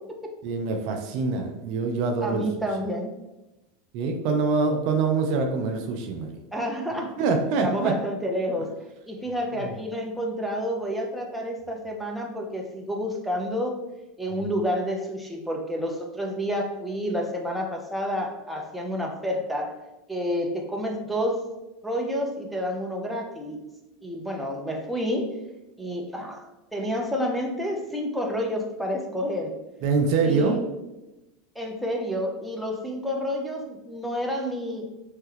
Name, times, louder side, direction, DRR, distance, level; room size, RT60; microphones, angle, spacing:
voice 1, 0.4-2.4 3.9-6.4 7.2-7.9 14.4-14.5 29.8-30.6, right 4 dB, 60° right, 3 dB, 0.4 m, -24 dB
voice 2, 2.2-3.1 6.5-7.1 7.6-8.7 9.1-13.8 14.2-19.8 20.1-21.5 21.8-23.6 24.0-25.4 25.8-26.4 26.7-29.5 30.2-30.6 31.6-34.9, equal, 5° right, 1 dB, 0.6 m, -29 dB
3.1 x 2.2 x 3.3 m, 1.0 s
hypercardioid pair, 90°, 0 cm